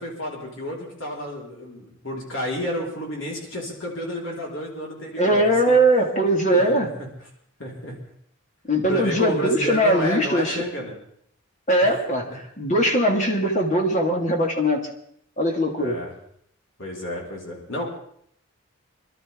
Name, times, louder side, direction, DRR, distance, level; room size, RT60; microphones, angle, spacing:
voice 1, 0.0-5.8 6.5-7.1 7.6-7.9 8.9-11.0 11.8-11.9 12.3-12.4 15.8-16.1 16.8-17.8, left 1 dB, 65° left, -2 dB, 4.3 m, -31 dB
voice 2, 5.2-6.9 8.7-10.6 11.7-14.9 15.4-16.0, right 1 dB, 35° left, 1 dB, 2.0 m, -20 dB
26.5 x 13.0 x 3.6 m, 0.67 s
head